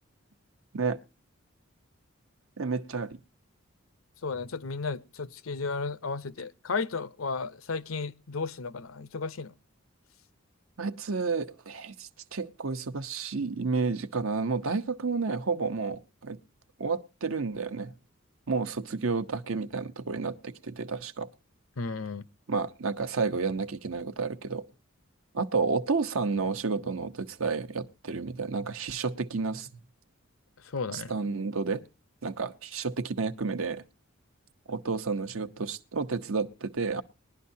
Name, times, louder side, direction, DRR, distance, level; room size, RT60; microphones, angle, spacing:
voice 1, 2.6-3.2 10.8-16.4 16.8-17.9 18.5-21.3 22.5-24.6 25.3-29.8 30.9-31.8 32.2-33.8 34.7-37.0, right 4 dB, 85° right, 0.9 m, -31 dB
voice 2, 4.2-9.5 21.8-22.2 30.6-31.1, left 4 dB, 90° left, 0.7 m, -34 dB
20.0 x 11.5 x 2.7 m
head